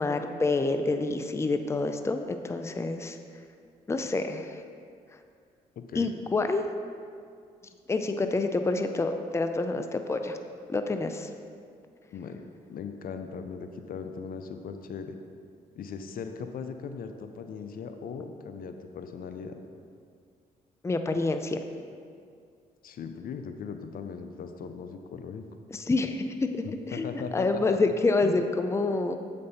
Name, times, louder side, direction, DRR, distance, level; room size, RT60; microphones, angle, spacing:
voice 1, 0.0-3.2 3.9-4.6 5.9-6.6 7.9-10.4 10.7-11.3 20.8-21.6 25.7-29.2, left 3 dB, 15° left, 7 dB, 0.5 m, -27 dB
voice 2, 5.8-6.1 12.1-12.4 12.7-15.2 15.8-19.6 22.8-25.5 26.9-27.9 28.2-28.4, left 6 dB, 60° left, 7 dB, 0.5 m, -38 dB
7.7 x 5.3 x 4.1 m, 2.3 s
supercardioid pair, 65°, 16 cm